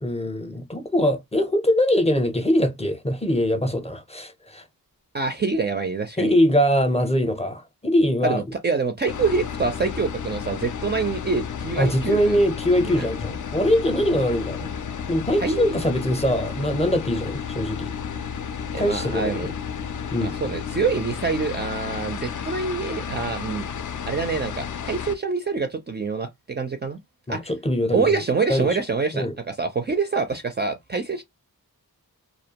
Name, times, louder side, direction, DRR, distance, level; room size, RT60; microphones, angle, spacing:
voice 1, 0.0-4.6 6.2-8.4 11.8-14.7 15.1-17.9 18.8-19.5 20.1-20.3 27.3-28.2 28.5-28.8 29.1-29.3, equal, 15° left, 0.6 m, -22 dB
voice 2, 5.1-6.3 8.2-12.4 12.8-13.1 15.4-15.7 18.7-19.5 20.2-23.7 24.1-27.0 27.3-27.5 27.9-31.2, right 4 dB, 30° right, 0.4 m, -26 dB
sound 1, 9.1-25.1, left 7 dB, 55° left, 0.5 m, -32 dB
2.3 x 2.1 x 2.8 m
wide cardioid pair, 70°, 37 cm